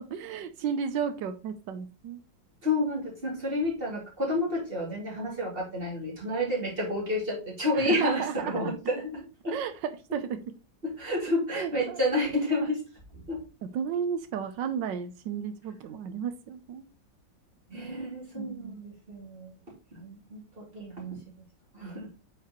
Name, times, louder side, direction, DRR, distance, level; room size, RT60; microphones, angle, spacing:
voice 1, 0.0-2.2 7.8-8.7 9.5-9.7 10.1-10.4 11.6-12.0 13.7-16.8 18.3-18.8, right 7 dB, 85° right, 9 dB, 1.4 m, -33 dB
voice 2, 2.6-9.5 10.8-12.8 13.1-13.4 17.7-19.6 19.9-21.2 21.7-22.1, left 1 dB, 30° right, -4 dB, 2.9 m, -30 dB
8.2 x 4.9 x 3.0 m, 0.31 s
omnidirectional pair, 1.9 m